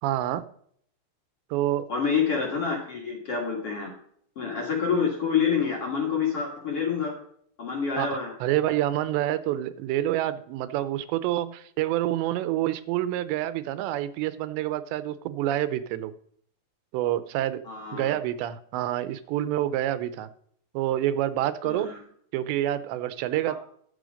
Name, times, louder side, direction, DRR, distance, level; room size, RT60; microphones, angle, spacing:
voice 1, 0.0-0.4 1.5-1.9 8.0-8.1 8.4-16.1 16.9-17.6 17.9-20.3 20.7-21.9 22.3-23.5, right 13 dB, 85° right, 14 dB, 2.9 m, -27 dB
voice 2, 1.9-3.9 4.4-7.1 7.6-8.3 17.6-18.1 21.6-22.0 23.5-23.6, left 6 dB, 45° left, -1 dB, 2.1 m, -27 dB
11.5 x 7.0 x 5.1 m, 0.64 s
omnidirectional pair, 5.0 m